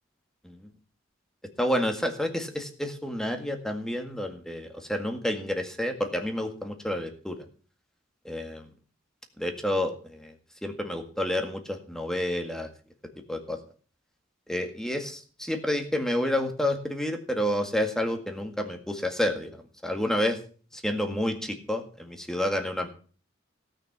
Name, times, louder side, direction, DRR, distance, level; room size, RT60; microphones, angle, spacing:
voice 1, 1.6-7.4 8.3-8.7 9.4-10.3 10.6-12.7 13.3-13.6 14.5-19.5 19.8-20.4 20.7-22.9, left 1 dB, 5° left, 5 dB, 1.8 m, -29 dB
17.0 x 6.3 x 7.4 m, 0.41 s
head